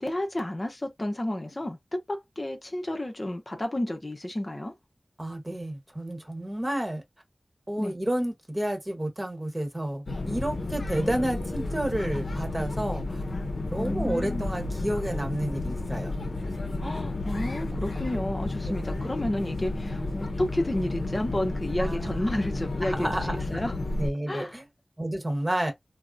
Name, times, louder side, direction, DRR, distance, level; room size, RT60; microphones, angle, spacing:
voice 1, 0.0-4.7 7.8-7.9 13.8-14.5 16.8-23.7 24.3-24.6, left 1 dB, 40° left, 0.7 m, -31 dB
voice 2, 5.2-7.0 7.7-13.2 13.7-16.1 19.8-20.1 21.8-22.2 22.8-23.4 24.0-24.6 25.0-25.7, right 1 dB, 25° right, 1.1 m, -30 dB
sound 1, 10.1-24.1, left 2 dB, 85° left, 0.6 m, -32 dB
3.4 x 2.1 x 2.6 m
wide cardioid pair, 60°, 0 cm